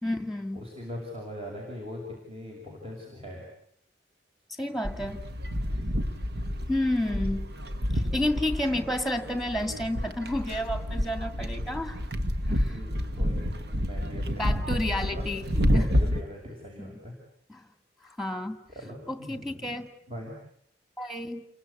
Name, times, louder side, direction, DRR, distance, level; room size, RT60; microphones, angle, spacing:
voice 1, 0.0-0.6 4.6-5.2 6.7-7.5 8.1-12.0 12.5-12.8 14.4-15.5 15.7-15.9 16.8-16.9 17.5-17.6 18.0-18.6 19.1-19.9 21.0-21.4, left 1 dB, ahead, 9 dB, 2.3 m, -30 dB
voice 2, 0.5-3.4 7.9-8.2 12.7-14.7 14.9-17.1 18.7-19.7 20.1-20.3, equal, 35° right, -1 dB, 6.2 m, -41 dB
sound 1, 4.8-16.2, equal, 65° right, 1.7 m, -29 dB
29.5 x 23.5 x 8.3 m, 0.69 s
head